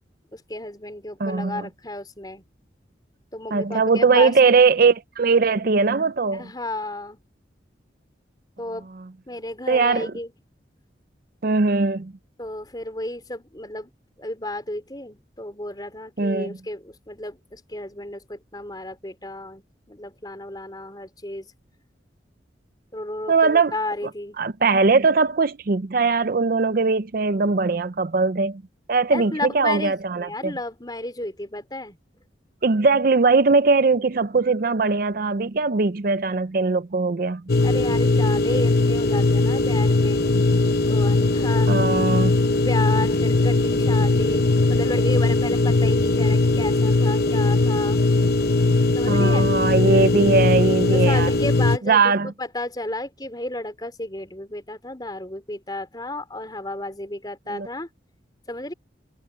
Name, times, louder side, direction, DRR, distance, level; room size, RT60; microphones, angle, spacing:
voice 1, 0.3-2.4 3.3-4.3 6.3-7.2 8.6-8.9 9.3-10.3 12.4-13.9 14.2-21.5 22.9-24.4 29.1-32.0 37.6-40.2 40.9-41.7 42.7-48.0 48.9-49.5 50.9-57.9 58.5-58.7, left 1 dB, 20° left, 4.0 m, -32 dB
voice 2, 1.2-1.7 3.5-6.4 9.7-10.1 11.4-12.1 16.2-16.5 23.3-23.7 24.4-28.6 28.9-30.5 32.6-37.4 41.7-42.4 49.1-51.3 51.9-52.3 57.5-57.7, right 4 dB, 50° right, 0.5 m, -20 dB
sound 1, 37.5-51.8, left 2 dB, 55° left, 0.9 m, -19 dB
head